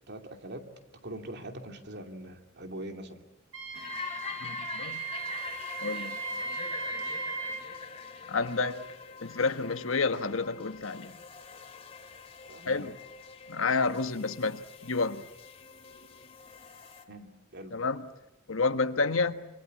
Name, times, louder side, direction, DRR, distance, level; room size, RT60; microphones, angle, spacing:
voice 1, 0.0-3.2 12.5-12.9 17.1-17.8, right 1 dB, 55° right, 2.7 m, -43 dB
Wind instrument woodwind instrument, 3.5-7.6, right 4 dB, 75° right, 7.8 m, -37 dB
sound 1, 3.7-17.0, left 5 dB, 30° left, 2.4 m, -44 dB
voice 2, 4.4-5.0 5.8-6.2 8.3-8.9 9.2-11.2 12.7-12.9 13.5-15.2 17.7-18.1 18.5-19.3, left 4 dB, 80° left, 1.3 m, -29 dB
26.5 x 24.5 x 8.5 m
head